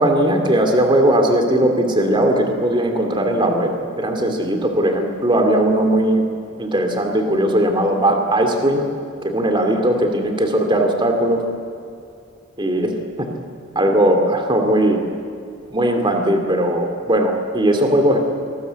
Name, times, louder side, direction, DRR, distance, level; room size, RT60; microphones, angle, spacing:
voice 1, 0.0-3.7 4.0-6.2 6.6-8.9 9.2-11.4 12.6-13.3 13.7-15.0 15.7-18.2, right 1 dB, 25° right, 4 dB, 2.5 m, -18 dB
24.0 x 20.0 x 8.2 m, 2.5 s
head